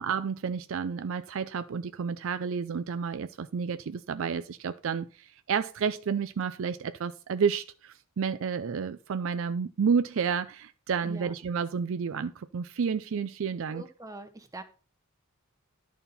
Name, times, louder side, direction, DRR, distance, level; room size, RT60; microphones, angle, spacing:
voice 1, 0.0-13.8, right 6 dB, 60° right, 0.4 m, -30 dB
voice 2, 11.0-11.3 13.7-14.6, right 2 dB, 15° right, 1.0 m, -43 dB
11.0 x 4.2 x 5.5 m
head